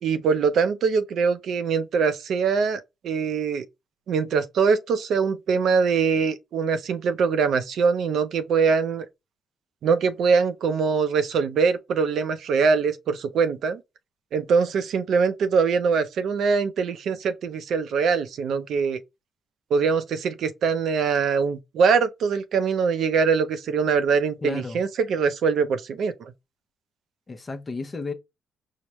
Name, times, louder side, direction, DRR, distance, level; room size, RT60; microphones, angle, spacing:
voice 1, 0.0-3.6 4.1-9.1 9.8-13.8 14.3-19.0 19.7-26.3, right 5 dB, 70° right, 0.5 m, -23 dB
voice 2, 24.4-24.8 27.3-28.1, left 3 dB, 30° left, 0.6 m, -32 dB
4.7 x 2.1 x 3.0 m
cardioid pair, 90°, 0 cm